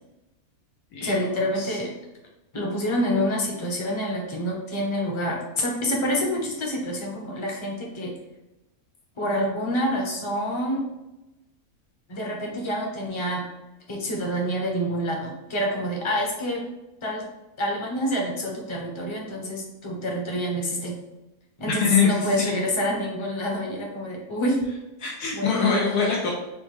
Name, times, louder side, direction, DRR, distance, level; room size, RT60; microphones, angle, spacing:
voice 1, 1.0-1.9 2.5-8.1 9.2-10.8 12.1-13.4 13.9-16.6 17.0-17.2 17.6-20.9 21.6-24.6 25.3-25.8, equal, 30° left, -1 dB, 0.6 m, -27 dB
voice 2, 21.7-22.5 25.0-26.3, left 5 dB, 85° left, -3 dB, 1.2 m, -24 dB
6.0 x 2.2 x 3.2 m, 0.98 s
omnidirectional pair, 1.6 m